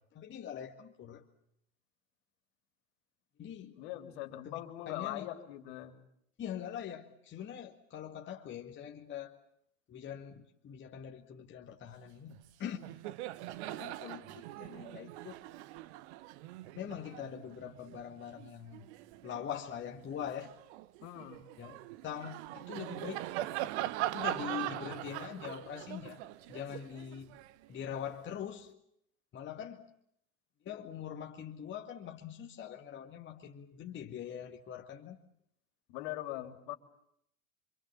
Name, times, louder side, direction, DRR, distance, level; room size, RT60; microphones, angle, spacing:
voice 1, 0.1-1.3 3.4-3.8 4.4-4.6 4.9-5.3 6.4-9.4 9.9-12.8 13.7-15.4 16.8-18.9 19.2-20.5 21.6-21.8 22.0-23.3 24.1-26.2 26.5-27.3 27.7-28.7 29.3-29.8 30.6-35.2, left 9 dB, 25° left, 2 dB, 2.1 m, -43 dB
voice 2, 3.8-5.9 21.0-21.4 35.9-36.7, left 14 dB, 50° left, 6 dB, 3.6 m, -41 dB
Laughter, 12.3-12.5 12.7-19.5 20.0-28.2, right 15 dB, 50° right, 1.3 m, -41 dB
27.0 x 26.0 x 7.4 m, 0.73 s
figure-of-eight pair, 90°, 43 cm